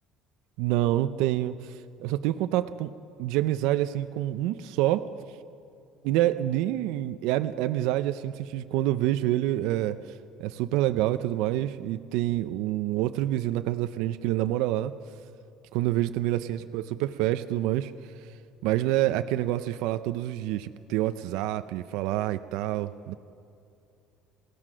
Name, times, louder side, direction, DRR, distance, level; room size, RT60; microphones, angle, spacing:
voice 1, 0.6-2.9 3.2-5.1 6.0-14.9 15.7-18.3 18.6-23.1, right 14 dB, 80° right, 10 dB, 0.5 m, -27 dB
27.0 x 17.0 x 6.3 m, 2.5 s
cardioid pair, 135°, 0 cm